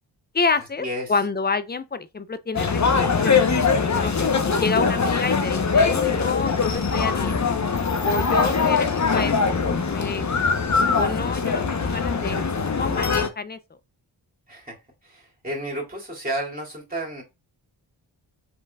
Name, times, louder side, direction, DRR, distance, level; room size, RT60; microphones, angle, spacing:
voice 1, 0.3-3.5 3.8-4.1 4.6-7.3 8.0-10.3 10.9-12.4 12.7-13.6, left 4 dB, 20° left, 0.6 m, -28 dB
sound 1, 2.5-13.3, left 5 dB, 35° left, 1.0 m, -22 dB
voice 2, 15.0-17.2, right 1 dB, 20° right, 2.5 m, -31 dB
5.2 x 3.7 x 2.4 m
cardioid pair, 45°, 47 cm